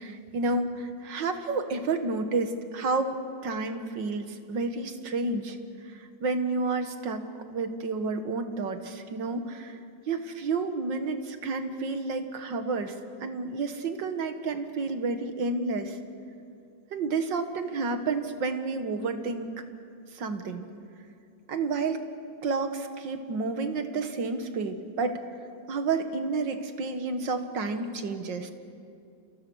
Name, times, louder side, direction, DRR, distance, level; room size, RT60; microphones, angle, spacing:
voice 1, 0.0-5.6 5.9-7.2 7.5-9.8 10.1-12.9 13.2-16.0 16.9-19.5 20.1-20.7 21.5-22.0 22.4-25.2 25.7-28.5, right 3 dB, 70° right, 8 dB, 2.2 m, -30 dB
28.5 x 27.0 x 6.3 m, 2.4 s
omnidirectional pair, 2.0 m